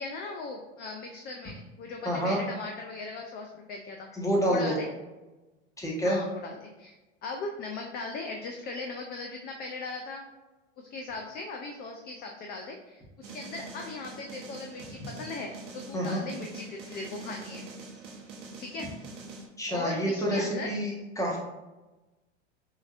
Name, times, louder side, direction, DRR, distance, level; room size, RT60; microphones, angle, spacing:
voice 1, 0.0-4.1 4.5-4.9 6.0-7.0 7.2-10.3 10.8-17.6 18.6-18.9 19.7-20.7, left 3 dB, 25° left, 2 dB, 0.4 m, -38 dB
voice 2, 2.0-2.4 4.1-4.7 5.8-6.2 15.9-16.2 19.6-21.4, equal, 10° left, -3 dB, 1.2 m, -28 dB
sound 1, 13.2-19.5, right 3 dB, 70° right, 1.0 m, -44 dB
5.7 x 2.7 x 2.4 m, 1.1 s
hypercardioid pair, 90°, 37 cm